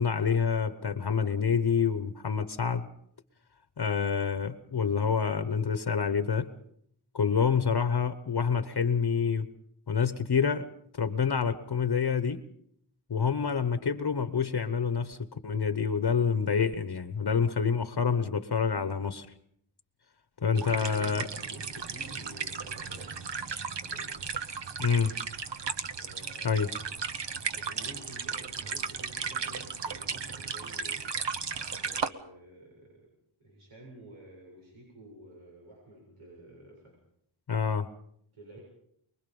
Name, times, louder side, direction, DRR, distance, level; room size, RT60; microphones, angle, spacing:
voice 1, 0.0-2.9 3.8-6.5 7.1-9.5 9.9-10.7 10.9-12.4 13.1-19.3 20.4-21.3 24.8-25.1 26.4-26.7 37.5-37.9, left 6 dB, 50° left, 11 dB, 1.1 m, -27 dB
voice 2, 20.4-23.3 23.8-24.1 25.8-26.9 27.5-31.0 31.7-33.1 33.4-37.0 38.3-38.6, right 1 dB, 85° right, -2 dB, 7.7 m, -50 dB
sound 1, 20.6-32.1, right 6 dB, 60° right, 1.1 m, -35 dB
24.0 x 22.5 x 5.4 m, 0.69 s
wide cardioid pair, 95°, 49 cm